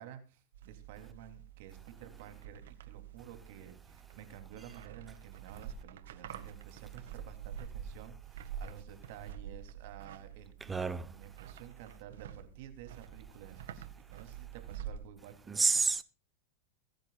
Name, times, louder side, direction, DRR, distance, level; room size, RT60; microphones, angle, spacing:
voice 1, 0.0-15.7, right 9 dB, 65° right, 3.3 m, -52 dB
sound 1, 0.5-15.1, right 9 dB, 85° right, 1.8 m, -47 dB
voice 2, 10.7-11.1 15.5-16.0, right 4 dB, 15° right, 1.0 m, -29 dB
22.5 x 10.5 x 2.5 m
supercardioid pair, 130°, 0 cm